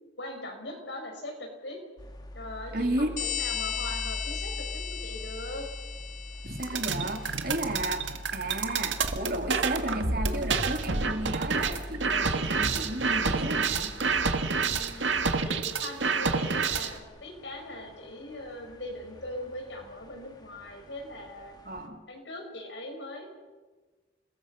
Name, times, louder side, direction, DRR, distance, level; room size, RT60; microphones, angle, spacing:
voice 1, 0.2-1.8 2.3-5.7 14.6-15.1 15.4-21.6 22.1-23.3, left 1 dB, 75° left, 3 dB, 6.0 m, -40 dB
sound 1, 2.0-21.9, left 1 dB, 20° left, 1.8 m, -43 dB
voice 2, 2.7-3.2 6.4-13.9 21.6-22.0, right 1 dB, 50° right, 4 dB, 2.8 m, -33 dB
sound 2, 3.2-7.4, left 9 dB, 40° left, 0.7 m, -36 dB
sound 3, 6.6-17.0, right 4 dB, 85° right, 1.9 m, -28 dB
29.0 x 21.0 x 6.0 m, 1.3 s
head